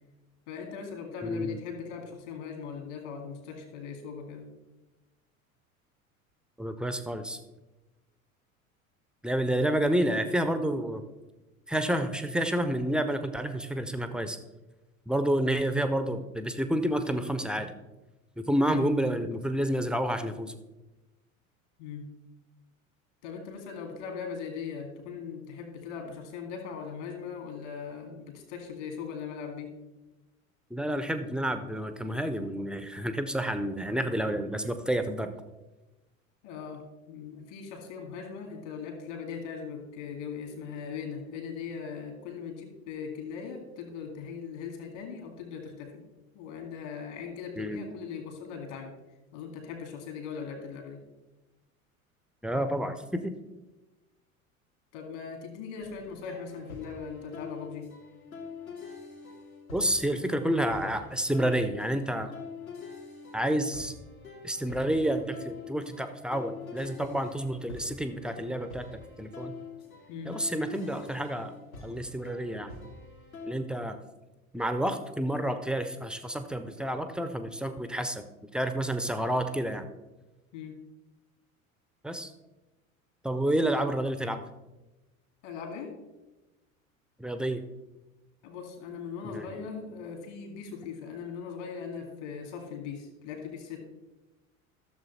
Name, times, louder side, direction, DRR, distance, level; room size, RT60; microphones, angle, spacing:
voice 1, 0.5-4.5 18.6-18.8 21.8-22.1 23.2-29.7 36.4-46.0 46.3-48.9 49.3-51.0 54.9-57.9 70.1-70.4 80.5-80.8 85.4-85.9 88.4-93.8, left 6 dB, 55° left, 4 dB, 2.3 m, -39 dB
voice 2, 1.2-1.6 6.6-7.4 9.2-11.0 11.7-14.4 15.1-17.7 18.4-20.6 30.7-35.3 47.6-47.8 52.4-53.3 59.7-62.3 63.3-63.9 64.4-69.5 70.3-71.5 71.8-72.7 73.5-74.0 74.5-78.2 78.5-79.9 82.0-82.3 83.2-84.4 87.2-87.6 89.2-89.7, right 1 dB, ahead, 9 dB, 0.6 m, -29 dB
sound 1, 55.8-73.5, left 4 dB, 80° left, 2.2 m, -45 dB
13.5 x 6.9 x 4.2 m, 1.1 s
figure-of-eight pair, 75°, 42 cm